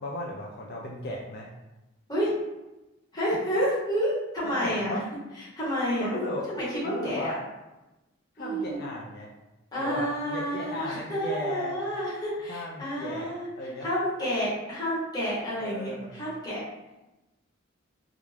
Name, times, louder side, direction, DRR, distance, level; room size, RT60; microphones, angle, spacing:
voice 1, 0.0-1.5 4.4-5.0 6.0-6.5 6.8-7.4 8.4-9.3 9.8-11.8 12.5-13.9 15.6-16.2, left 1 dB, 50° left, -3 dB, 0.4 m, -35 dB
voice 2, 3.1-5.0 5.6-6.2 6.5-7.4 8.4-8.8 9.7-13.5 13.8-16.6, equal, 20° left, -9 dB, 0.9 m, -29 dB
2.4 x 2.2 x 3.2 m, 1.0 s
head